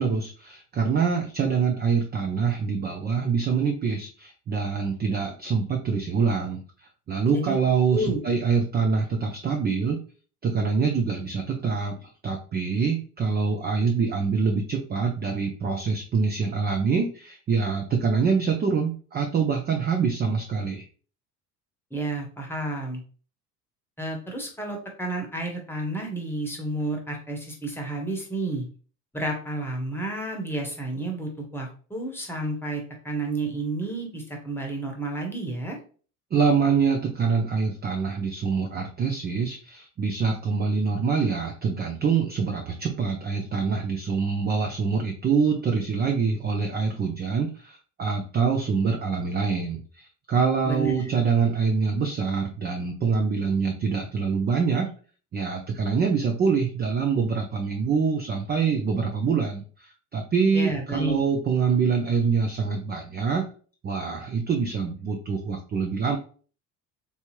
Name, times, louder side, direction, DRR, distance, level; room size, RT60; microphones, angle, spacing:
voice 1, 0.0-10.0 10.4-20.8 36.3-54.9 55.3-63.5 63.8-66.2, right 5 dB, 20° right, 3 dB, 0.5 m, -25 dB
voice 2, 21.9-23.0 24.0-28.7 29.1-35.8 50.6-51.1 60.5-61.2, right 2 dB, 5° left, 0 dB, 1.1 m, -31 dB
3.3 x 2.7 x 3.0 m, 0.40 s
hypercardioid pair, 65°, 47 cm